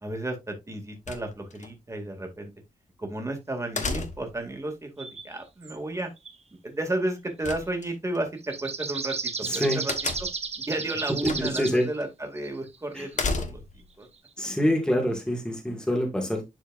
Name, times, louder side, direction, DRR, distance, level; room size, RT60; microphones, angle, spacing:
voice 1, 0.0-2.5 3.0-6.1 6.6-9.9 10.7-14.1, right 2 dB, 20° right, 2.1 m, -33 dB
sound 1, 1.1-1.7 3.8-4.4 7.4-8.2 9.9-10.5 11.2-11.7 12.0-12.1 13.1-13.8, left 4 dB, 60° left, 1.2 m, -32 dB
sound 2, 5.0-5.3 5.6-5.8 6.2-6.3 8.4-11.9 12.4-12.5 12.7-13.2 14.3-14.4, right 5 dB, 45° right, 0.9 m, -34 dB
voice 2, 9.5-9.8 11.1-11.9 12.9-13.1 14.4-16.4, equal, 5° left, 1.8 m, -26 dB
11.0 x 4.5 x 2.4 m
wide cardioid pair, 130°, 14 cm